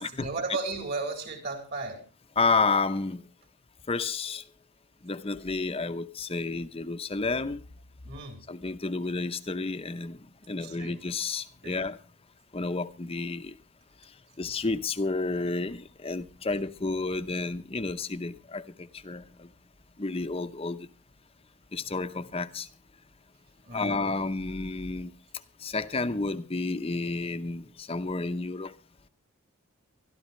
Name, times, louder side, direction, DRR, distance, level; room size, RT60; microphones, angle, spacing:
voice 1, 0.0-2.1 8.0-8.4 10.6-11.0 11.6-11.8 23.6-24.0, right 3 dB, 50° right, 3.9 m, -35 dB
voice 2, 2.4-3.2 3.9-4.4 5.0-7.6 8.5-10.2 10.5-12.0 12.5-13.5 14.4-19.5 20.0-20.9 21.7-22.7 23.7-25.1 25.6-28.7, left 3 dB, 25° left, 0.7 m, -31 dB
24.0 x 12.5 x 3.2 m
head